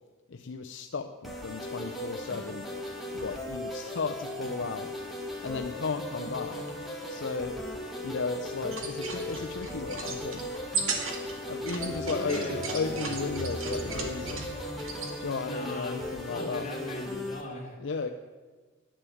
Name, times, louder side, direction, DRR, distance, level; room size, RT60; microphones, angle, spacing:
voice 1, 0.3-2.7 3.1-4.9 5.4-6.6 7.1-7.6 8.0-10.5 11.5-14.5 15.2-16.7 17.8-18.1, left 4 dB, 65° left, 6 dB, 0.6 m, -34 dB
sound 1, 1.2-17.4, left 1 dB, ahead, 2.1 m, -38 dB
sound 2, 8.6-15.1, right 4 dB, 80° right, 2.1 m, -37 dB
sound 3, 11.5-15.2, equal, 90° left, 1.6 m, -39 dB
voice 2, 12.1-12.6 15.4-17.8, left 1 dB, 35° left, -1 dB, 2.8 m, -39 dB
10.5 x 10.0 x 8.5 m, 1.4 s
head